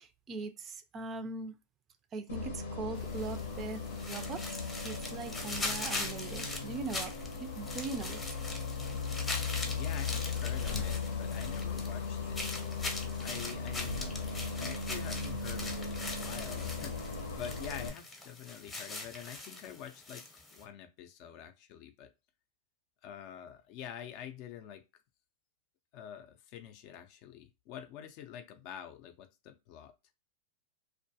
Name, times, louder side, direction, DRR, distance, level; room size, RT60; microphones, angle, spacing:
voice 1, 0.0-1.5 2.1-8.2, right 4 dB, 30° right, 0.4 m, -41 dB
Bus, 2.3-17.9, left 5 dB, 85° left, 0.7 m, -37 dB
sound 1, 3.0-20.6, left 2 dB, 15° left, 0.7 m, -42 dB
voice 2, 9.6-12.5 13.2-14.2 14.6-22.1 23.0-24.8 25.9-29.9, left 9 dB, 50° left, 0.4 m, -46 dB
2.2 x 2.1 x 2.7 m
hypercardioid pair, 125°, 0 cm